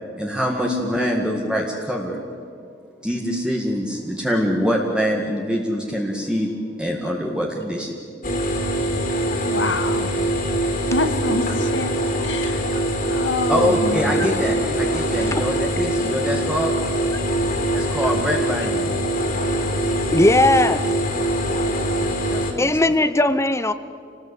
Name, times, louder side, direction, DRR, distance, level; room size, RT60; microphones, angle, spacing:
voice 1, 0.2-2.2 3.0-6.5 6.8-7.9 13.5-16.7 17.7-18.9 22.3-22.7, equal, 5° right, -1 dB, 1.9 m, -24 dB
sound 1, 8.2-22.5, right 1 dB, 45° left, 3.6 m, -23 dB
voice 2, 9.4-10.1 10.9-12.0 12.2-12.6 13.1-14.3, left 2 dB, 75° left, 8 dB, 2.0 m, -26 dB
voice 3, 20.1-20.8 22.6-23.7, left 2 dB, 15° left, 12 dB, 0.6 m, -18 dB
27.5 x 19.0 x 8.3 m, 2.3 s
head